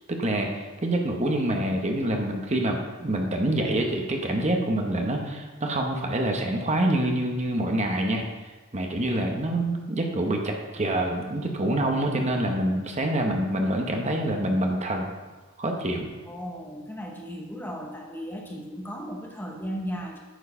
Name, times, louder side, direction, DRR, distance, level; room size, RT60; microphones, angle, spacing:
voice 1, 0.1-8.2 8.7-15.1 15.6-16.1, right 1 dB, 35° right, 2 dB, 1.0 m, -26 dB
voice 2, 16.3-20.2, equal, 10° left, 0 dB, 0.8 m, -36 dB
9.0 x 4.6 x 5.6 m, 1.2 s
head